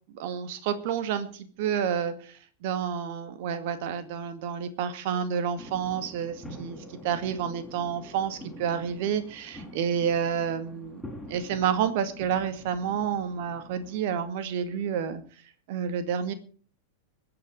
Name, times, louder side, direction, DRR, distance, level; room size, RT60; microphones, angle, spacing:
voice 1, 0.1-2.1 2.6-6.8 7.0-11.0 11.3-15.2 15.7-16.3, right 8 dB, 50° right, 11 dB, 2.0 m, -29 dB
sound 1, 5.6-14.0, left 1 dB, ahead, 4.9 m, -46 dB
21.5 x 8.8 x 5.2 m, 0.42 s
figure-of-eight pair, 90°, 0 cm